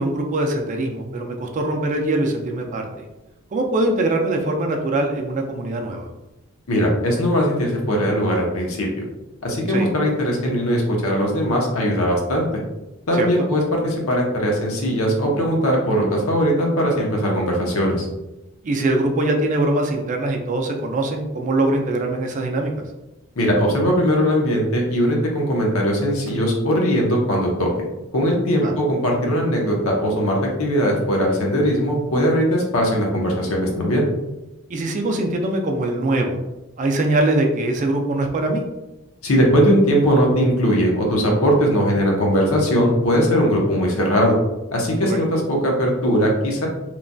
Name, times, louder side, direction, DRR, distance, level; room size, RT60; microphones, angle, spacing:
voice 1, 0.0-2.9 3.5-6.1 9.7-9.9 13.1-13.5 18.6-22.7 28.6-28.7 34.7-36.4 36.8-38.6 45.0-45.2, right 2 dB, 35° right, 2 dB, 0.3 m, -22 dB
voice 2, 6.7-8.9 9.4-12.5 13.1-18.1 23.4-27.7 28.1-34.0 39.2-44.3 44.7-46.7, equal, 85° left, -1 dB, 0.7 m, -19 dB
3.0 x 2.2 x 2.5 m, 0.99 s
head